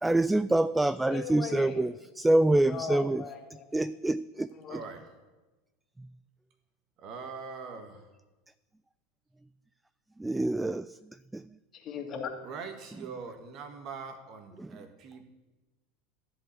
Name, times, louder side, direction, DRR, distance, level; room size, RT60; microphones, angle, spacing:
voice 1, 0.0-3.2 3.7-4.5 10.2-10.9 11.3-11.4 14.6-14.7, right 1 dB, 10° right, 0.3 m, -26 dB
voice 2, 1.1-1.9 2.7-3.7 4.5-4.8 11.7-12.3, left 6 dB, 35° left, 2.2 m, -38 dB
voice 3, 4.7-5.1 7.0-8.1 12.4-15.2, right 5 dB, 45° right, 1.7 m, -42 dB
14.5 x 5.4 x 8.3 m
figure-of-eight pair, 80°, 0 cm